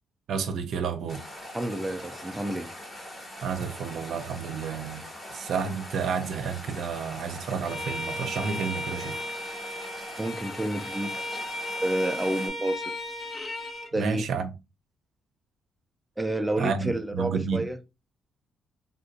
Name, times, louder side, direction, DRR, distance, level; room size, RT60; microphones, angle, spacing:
voice 1, 0.3-1.2 3.4-9.2 14.0-14.5 16.6-17.6, right 6 dB, 70° right, 0.6 m, -31 dB
sound 1, 1.1-12.5, left 1 dB, 20° left, 1.6 m, -42 dB
voice 2, 1.5-2.7 10.2-11.4 11.8-12.9 13.9-14.2 16.2-17.8, right 1 dB, 5° right, 0.4 m, -29 dB
Bowed string instrument, 7.6-13.9, left 1 dB, 40° left, 0.7 m, -35 dB
3.5 x 2.6 x 2.5 m
cardioid pair, 90°, 0 cm